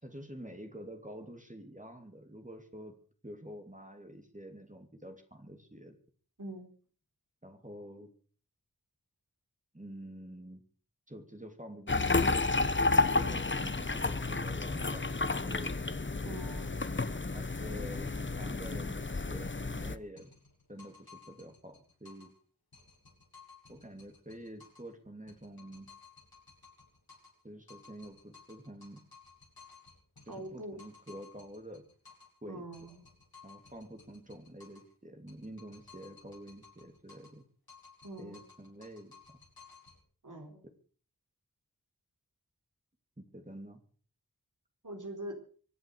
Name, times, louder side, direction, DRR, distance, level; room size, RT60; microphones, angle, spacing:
voice 1, 0.0-3.0 3.2-6.0 7.4-8.1 9.7-10.6 11.1-15.7 17.3-20.3 20.7-22.3 23.7-25.9 27.4-29.0 30.3-31.8 32.4-32.9 33.4-37.4 38.2-39.1 43.2-43.8, right 1 dB, 20° right, 5 dB, 3.0 m, -48 dB
voice 2, 6.4-6.7 13.2-13.4 16.2-16.8 30.3-30.8 32.5-33.0 38.0-38.4 40.2-40.6 44.8-45.4, right 1 dB, 55° right, 2 dB, 4.0 m, -43 dB
sound 1, 11.9-20.0, left 3 dB, 30° left, 1.0 m, -31 dB
sound 2, 20.2-22.4 22.7-24.9 25.3-27.4 27.7-32.4 32.7-34.9 35.3-37.4 37.7-40.0, left 5 dB, 90° left, 6.9 m, -57 dB
24.5 x 8.1 x 6.5 m, 0.43 s
wide cardioid pair, 40°, 36 cm